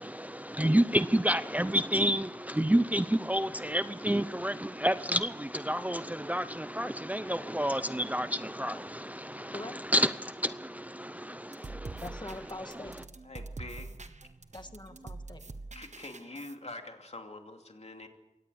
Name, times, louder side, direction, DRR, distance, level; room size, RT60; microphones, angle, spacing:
voice 1, 0.0-12.9, equal, 10° right, 13 dB, 0.6 m, -30 dB
sound 1, 11.5-16.5, right 3 dB, 70° right, 1.3 m, -45 dB
voice 2, 12.0-13.1 14.5-15.6, left 2 dB, 35° left, 7 dB, 1.9 m, -43 dB
voice 3, 13.2-13.9 15.7-18.1, left 2 dB, 60° left, 4 dB, 2.7 m, -45 dB
23.5 x 17.5 x 7.0 m, 1.0 s
wide cardioid pair, 60°, 13 cm